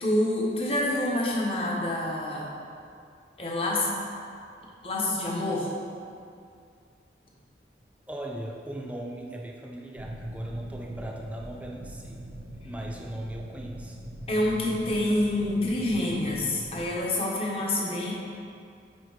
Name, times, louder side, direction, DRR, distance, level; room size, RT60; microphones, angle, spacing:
voice 1, 0.0-2.5 3.4-4.0 4.8-5.7 14.3-18.1, left 1 dB, 30° left, -3 dB, 1.0 m, -27 dB
voice 2, 8.1-12.3 12.6-14.0, right 1 dB, 10° right, -1 dB, 0.5 m, -38 dB
sound 1, 10.0-17.0, equal, 55° right, 0.7 m, -42 dB
9.9 x 4.4 x 3.2 m, 2.3 s
head